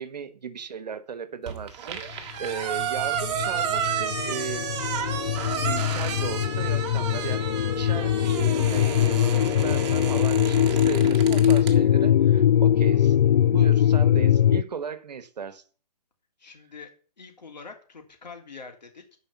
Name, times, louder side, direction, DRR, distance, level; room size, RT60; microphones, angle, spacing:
voice 1, 0.0-2.0 2.4-4.7 5.7-13.2 13.5-15.6, right 6 dB, 75° right, 1.3 m, -36 dB
sound 1, 1.5-11.8, right 8 dB, 40° right, 1.8 m, -32 dB
sound 2, 2.6-14.6, left 10 dB, 70° left, 0.6 m, -22 dB
voice 2, 16.4-16.9 17.2-19.2, left 4 dB, 85° left, 3.3 m, -45 dB
11.5 x 5.1 x 7.1 m
hypercardioid pair, 140°, 21 cm